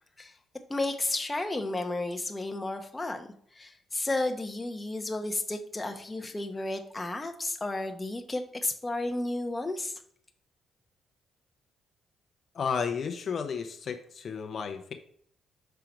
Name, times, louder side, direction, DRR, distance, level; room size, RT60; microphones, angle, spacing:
voice 1, 0.7-3.3 3.6-9.9, left 2 dB, 20° left, 5 dB, 0.9 m, -32 dB
voice 2, 12.5-14.9, left 6 dB, 50° left, 6 dB, 0.8 m, -32 dB
5.9 x 4.6 x 5.2 m, 0.62 s
cardioid pair, 90°, 0 cm